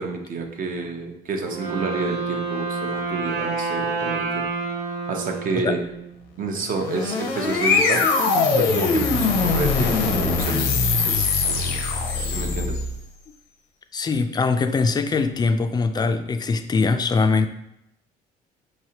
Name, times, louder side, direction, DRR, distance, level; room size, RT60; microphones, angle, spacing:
voice 1, 0.0-4.5 5.1-5.8 6.4-8.0 8.5-11.8 12.3-12.8, right 4 dB, 55° right, 3 dB, 0.8 m, -29 dB
Wind instrument woodwind instrument, 1.4-6.3, right 4 dB, 85° right, 0.8 m, -28 dB
sound 1, 6.6-13.0, left 4 dB, 90° left, 0.7 m, -22 dB
voice 2, 13.9-17.5, left 4 dB, 25° left, 8 dB, 0.3 m, -22 dB
4.7 x 3.2 x 2.9 m, 0.80 s
cardioid pair, 110°, 17 cm